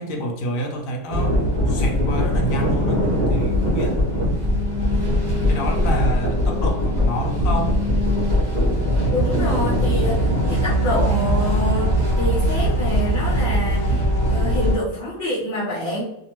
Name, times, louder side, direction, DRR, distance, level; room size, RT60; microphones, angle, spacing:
voice 1, 0.0-1.4 1.7-4.0 5.5-7.8, equal, 90° left, 1 dB, 1.0 m, -28 dB
sound 1, 1.1-14.8, equal, 35° right, 0.9 m, -21 dB
sound 2, 7.1-12.5, right 3 dB, 65° right, 0.4 m, -31 dB
voice 2, 9.1-16.0, equal, 50° left, -8 dB, 0.8 m, -27 dB
2.6 x 2.4 x 2.8 m, 0.86 s
omnidirectional pair, 1.4 m